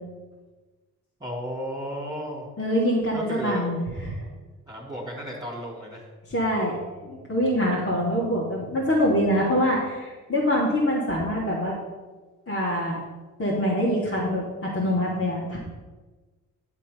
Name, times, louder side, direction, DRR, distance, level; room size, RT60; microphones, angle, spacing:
voice 1, 1.2-2.5 3.1-3.6 4.7-6.0, right 1 dB, 10° right, -5 dB, 3.3 m, -34 dB
voice 2, 2.6-4.1 6.3-11.7 12.5-13.0 13.4-15.6, equal, 30° left, -5 dB, 3.0 m, -24 dB
10.0 x 7.4 x 5.4 m, 1.3 s
hypercardioid pair, 50°, 44 cm